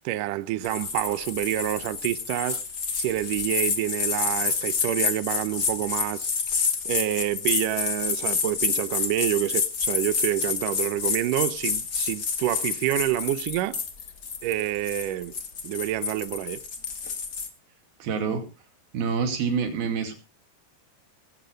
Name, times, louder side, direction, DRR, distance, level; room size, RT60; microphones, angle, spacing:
voice 1, 0.1-2.6 3.0-6.3 6.9-13.8 14.4-15.3 15.6-16.6, right 14 dB, 80° right, 1.9 m, -27 dB
sound 1, 0.6-17.5, left 5 dB, 45° left, 1.2 m, -29 dB
voice 2, 18.0-18.5 18.9-20.1, right 6 dB, 60° right, 4.2 m, -27 dB
19.5 x 8.3 x 5.2 m
omnidirectional pair, 4.9 m